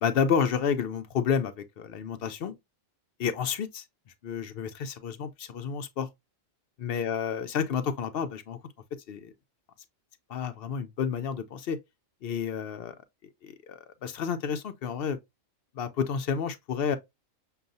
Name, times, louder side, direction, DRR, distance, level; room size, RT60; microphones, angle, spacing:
voice 1, 0.0-2.5 3.2-3.8 4.2-6.1 6.8-8.6 9.1-9.3 10.3-11.8 12.2-12.9 13.4-15.2 15.7-17.0, left 7 dB, 60° left, 0.7 m, -30 dB
6.6 x 2.3 x 2.5 m
omnidirectional pair, 1.3 m